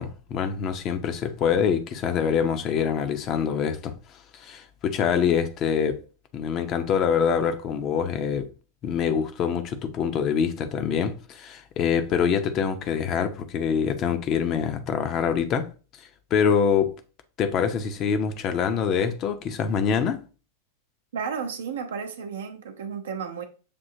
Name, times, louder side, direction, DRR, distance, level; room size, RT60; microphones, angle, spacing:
voice 1, 0.0-3.9 4.3-6.0 6.3-8.5 8.8-15.7 16.3-16.9 17.4-20.2, left 7 dB, 35° left, 0.6 m, -25 dB
voice 2, 21.1-23.4, right 6 dB, 65° right, 0.7 m, -33 dB
6.8 x 2.8 x 2.7 m
figure-of-eight pair, 90°, 0 cm